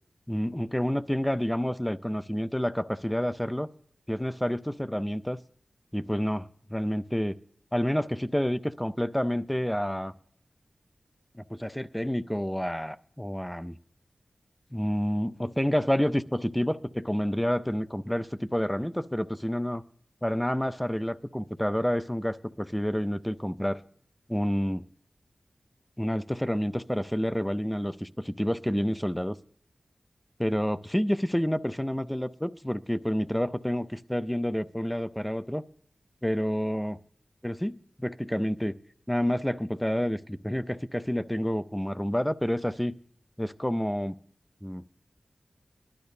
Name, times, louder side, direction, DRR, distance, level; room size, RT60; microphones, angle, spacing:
voice 1, 0.3-3.7 4.1-5.4 5.9-7.4 7.7-10.1 11.3-13.8 14.7-19.8 20.2-23.8 24.3-24.9 26.0-29.4 30.4-35.6 36.2-37.0 37.4-38.8 39.1-43.0 43.4-44.2 44.6-44.9, equal, 5° left, 0.5 m, -29 dB
20.0 x 12.0 x 2.7 m
wide cardioid pair, 60°, 0 cm